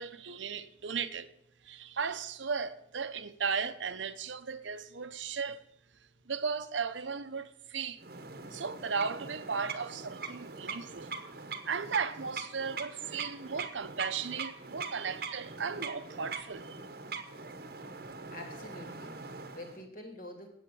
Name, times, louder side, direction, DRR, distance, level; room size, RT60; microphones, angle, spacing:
voice 1, 0.0-1.3 1.6-5.6 6.3-8.0 8.5-11.1 11.7-16.8, right 5 dB, 80° right, 0.8 m, -36 dB
sound 1, 8.0-19.8, right 4 dB, 55° right, 1.0 m, -42 dB
voice 2, 17.7-20.5, left 1 dB, 45° left, 2.6 m, -47 dB
9.2 x 8.2 x 6.9 m
head